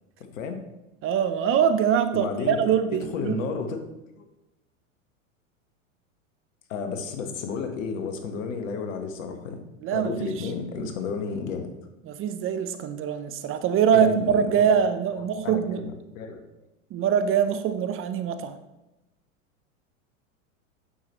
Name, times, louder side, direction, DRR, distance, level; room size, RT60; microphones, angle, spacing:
voice 1, 1.0-3.4 9.8-10.5 10.8-10.9 12.1-15.8 16.9-18.6, right 8 dB, 30° right, 10 dB, 0.7 m, -23 dB
voice 2, 2.1-2.6 2.9-3.8 4.2-4.3 6.7-9.6 9.9-11.7 13.9-14.9 15.4-16.4, left 5 dB, 70° left, 6 dB, 1.5 m, -32 dB
9.0 x 7.0 x 3.1 m, 0.97 s
hypercardioid pair, 100°, 41 cm